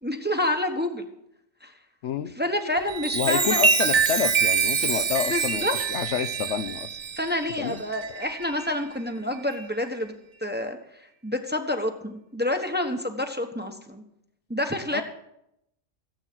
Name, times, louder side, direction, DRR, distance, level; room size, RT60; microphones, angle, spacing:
voice 1, 0.0-1.0 1.6-1.7 2.4-3.6 5.3-5.7 7.2-10.1 10.4-10.8 11.2-14.0 14.5-15.0, left 1 dB, 10° right, 5 dB, 1.0 m, -28 dB
voice 2, 2.0-2.3 3.1-6.9 7.6-7.8 14.9-15.0, left 8 dB, 75° left, 11 dB, 1.0 m, -28 dB
Chime, 2.8-8.8 9.3-9.6, right 5 dB, 40° right, 0.7 m, -25 dB
16.0 x 8.0 x 6.1 m, 0.80 s
omnidirectional pair, 1.3 m